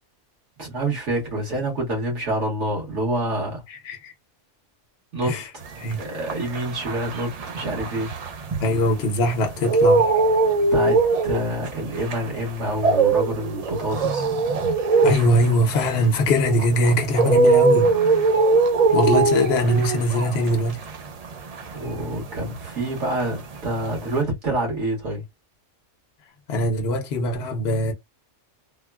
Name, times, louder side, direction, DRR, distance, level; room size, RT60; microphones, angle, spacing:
voice 1, 0.6-3.6 5.1-5.4 5.9-8.1 10.7-14.4 21.7-25.2, right 1 dB, 70° right, 1.7 m, -27 dB
sound 1, 5.8-9.1 9.5-22.9 23.1-24.2, right 3 dB, 50° right, 0.4 m, -21 dB
voice 2, 8.6-10.1 15.0-17.9 18.9-20.8 26.5-27.9, left 1 dB, 60° left, 1.0 m, -21 dB
3.5 x 2.1 x 2.3 m
omnidirectional pair, 1.3 m